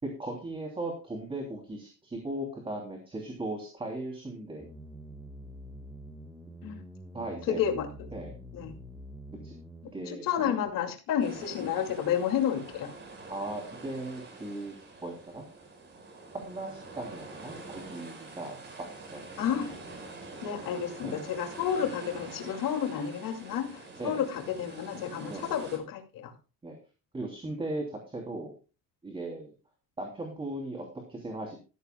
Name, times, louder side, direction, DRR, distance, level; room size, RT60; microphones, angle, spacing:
voice 1, 0.0-4.7 7.1-7.6 8.1-8.3 9.4-9.5 9.9-10.7 13.3-14.7 15.0-15.4 16.3-19.4 21.0-21.2 24.0-24.2 25.3-25.5 26.6-26.8 27.1-28.5 29.0-29.5 30.0-31.6, right 2 dB, 15° right, 1 dB, 3.0 m, -38 dB
sound 1, 4.6-9.9, equal, ahead, 1.8 m, -46 dB
voice 2, 7.5-7.9 8.5-8.7 10.1-12.9 19.4-19.7 20.4-26.3, left 9 dB, 75° left, 4 dB, 2.4 m, -31 dB
sound 2, 11.2-25.8, right 3 dB, 30° right, 4.9 m, -46 dB
14.5 x 13.5 x 2.3 m, 0.33 s
cardioid pair, 155°, 33 cm